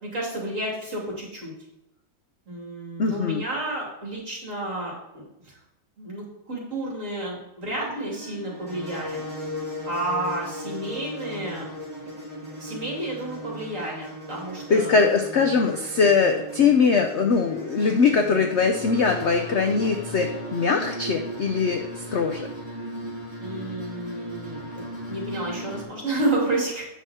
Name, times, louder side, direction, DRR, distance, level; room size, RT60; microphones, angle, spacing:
voice 1, 0.0-1.5 2.5-5.5 6.0-9.2 9.9-11.7 12.6-15.1 23.4-26.9, right 2 dB, 40° right, -3 dB, 3.2 m, -31 dB
voice 2, 3.0-3.4 14.7-22.5, left 5 dB, 75° left, 4 dB, 0.6 m, -21 dB
sound 1, 7.6-25.8, equal, 15° right, 3.1 m, -37 dB
8.9 x 6.2 x 4.3 m, 0.90 s
omnidirectional pair, 2.0 m